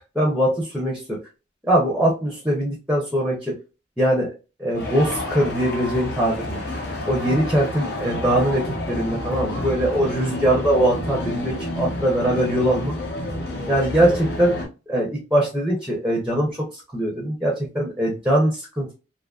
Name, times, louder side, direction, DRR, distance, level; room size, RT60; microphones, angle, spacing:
voice 1, 0.1-1.2 1.6-3.6 4.0-4.3 4.6-6.6 7.1-12.9 13.7-18.9, right 1 dB, 5° right, -1 dB, 0.5 m, -22 dB
sound 1, 4.7-14.7, left 1 dB, 55° left, 0.7 m, -29 dB
2.6 x 2.4 x 2.3 m, 0.31 s
head